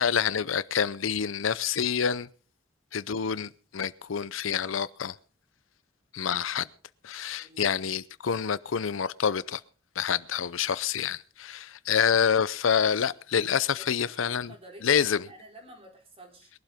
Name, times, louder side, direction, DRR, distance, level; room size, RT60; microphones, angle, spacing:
voice 1, 0.0-2.3 2.9-5.1 6.1-6.7 7.0-9.6 10.0-14.5 14.8-15.3, left 7 dB, 80° left, 0.6 m, -27 dB
voice 2, 7.4-7.7 14.0-16.5, right 1 dB, 30° right, 4.0 m, -50 dB
22.0 x 12.0 x 3.6 m
head